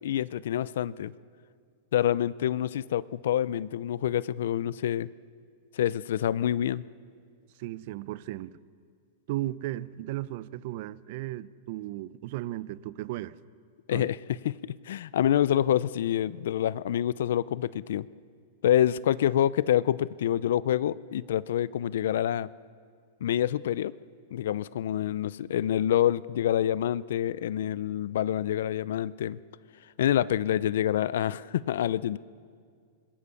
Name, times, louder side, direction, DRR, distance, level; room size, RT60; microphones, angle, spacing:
voice 1, 0.0-1.1 1.9-5.1 5.7-6.8 13.9-14.2 14.4-14.6 14.9-18.1 18.6-22.5 23.2-23.9 24.3-29.4 30.0-32.2, left 11 dB, 75° left, 0.5 m, -27 dB
voice 2, 7.6-8.6 9.3-13.3 13.9-14.1, right 15 dB, 50° right, 0.6 m, -35 dB
25.0 x 21.0 x 7.0 m
supercardioid pair, 160°, 0 cm